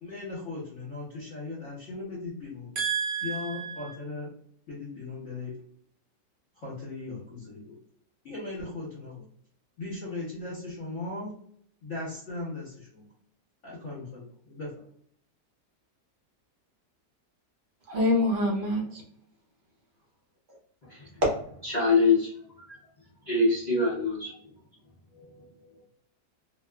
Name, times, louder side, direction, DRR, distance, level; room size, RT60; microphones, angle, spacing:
voice 1, 0.0-2.7 3.2-4.3 4.7-5.5 6.5-7.8 8.2-9.2 9.8-11.4 11.8-13.1 13.6-14.8, left 3 dB, 55° left, -7 dB, 1.1 m, -38 dB
voice 2, 2.8-3.9 17.9-19.0, equal, 60° right, -2 dB, 0.7 m, -27 dB
voice 3, 21.6-22.3 23.3-24.3 25.1-25.5 25.7-25.8, left 3 dB, 75° left, -8 dB, 0.4 m, -24 dB
2.8 x 2.3 x 2.2 m, 0.62 s
omnidirectional pair, 1.9 m